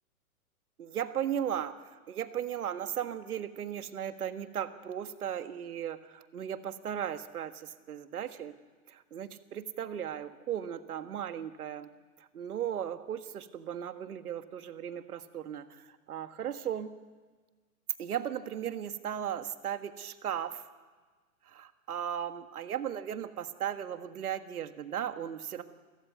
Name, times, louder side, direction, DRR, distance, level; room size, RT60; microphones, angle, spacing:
voice 1, 0.8-8.6 8.9-11.9 12.2-16.9 18.0-20.6 21.5-25.6, right 9 dB, 85° right, 9 dB, 1.7 m, -36 dB
29.5 x 14.5 x 9.4 m, 1.4 s
hypercardioid pair, 165°, 44 cm